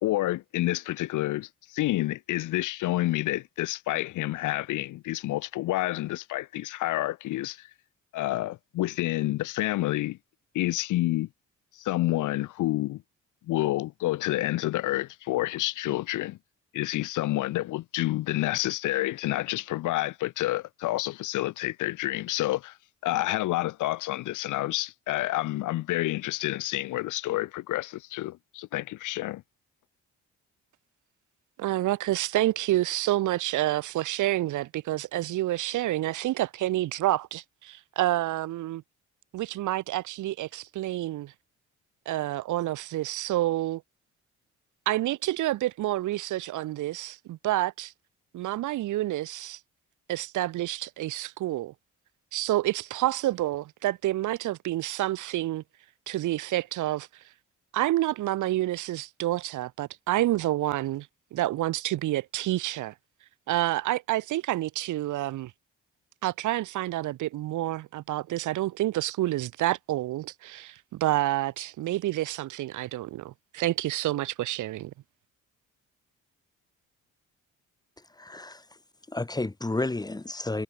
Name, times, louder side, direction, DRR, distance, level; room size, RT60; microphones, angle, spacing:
voice 1, 0.0-7.7 8.1-10.2 10.5-11.3 11.8-13.0 13.5-16.4 16.7-22.7 23.0-29.4, left 16 dB, 80° left, 0.8 m, -29 dB
voice 2, 31.6-38.8 39.3-41.3 42.1-43.8 44.9-47.9 48.3-49.6 50.1-51.7 52.3-55.6 56.1-57.1 57.7-62.9 63.5-65.5 66.2-74.9, right 15 dB, 80° right, 1.0 m, -28 dB
voice 3, 78.2-78.6 79.1-80.6, left 2 dB, 15° left, 2.0 m, -31 dB
cardioid pair, 90°, 30 cm